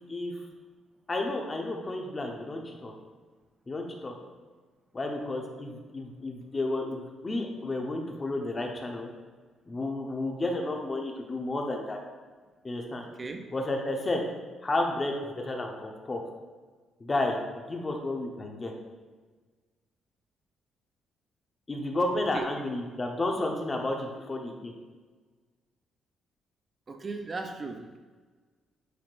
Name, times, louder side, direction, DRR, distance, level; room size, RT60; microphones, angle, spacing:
voice 1, 1.1-2.9 3.7-4.1 4.9-9.1 9.7-12.0 12.6-13.0 13.5-14.2 14.6-16.2 17.0-18.7 21.7-24.7, left 2 dB, 30° left, 1 dB, 1.0 m, -32 dB
voice 2, 13.2-13.5 22.3-22.5 26.9-28.0, right 3 dB, 35° right, 5 dB, 0.5 m, -37 dB
9.3 x 4.2 x 2.5 m, 1.4 s
cardioid pair, 90°, 0 cm